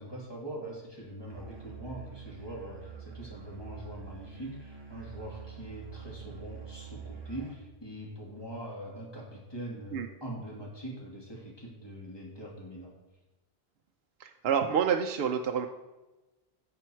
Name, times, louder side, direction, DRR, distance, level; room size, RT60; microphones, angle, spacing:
voice 1, 0.0-12.9, right 1 dB, 25° left, -3 dB, 2.5 m, -42 dB
Musical instrument, 1.3-7.7, right 7 dB, 25° right, 1.0 m, -46 dB
voice 2, 14.2-15.7, right 7 dB, 70° right, 4 dB, 0.8 m, -28 dB
10.5 x 6.9 x 4.5 m, 1.1 s
omnidirectional pair, 1.1 m